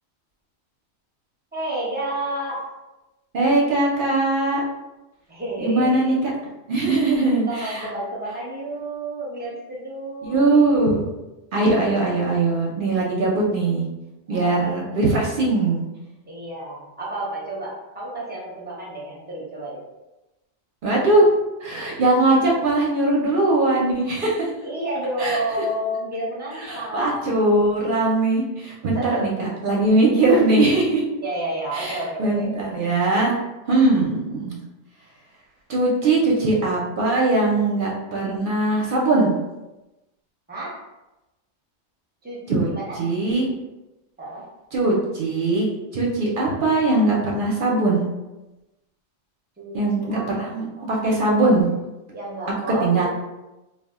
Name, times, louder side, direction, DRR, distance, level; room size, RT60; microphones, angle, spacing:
voice 1, 1.5-2.6 5.3-6.4 7.5-10.5 14.3-14.8 16.3-19.8 24.6-27.6 28.9-29.3 31.2-32.5 40.5-40.8 42.2-43.0 44.2-44.4 49.6-50.3 50.8-51.0 52.1-53.0, right 1 dB, 10° right, -5 dB, 0.5 m, -31 dB
voice 2, 3.3-4.6 5.6-6.3 6.7-7.9 10.2-11.0 11.5-13.8 14.3-15.8 20.8-21.3 21.6-24.5 25.2-25.4 26.7-31.0 31.7-33.3 33.7-34.5 35.7-39.3 42.5-42.7 43.0-43.5 44.7-45.7 45.9-48.1 49.7-51.7 52.8-53.0, right 2 dB, 60° right, -3 dB, 0.6 m, -20 dB
2.3 x 2.1 x 3.4 m, 1.0 s
omnidirectional pair, 1.2 m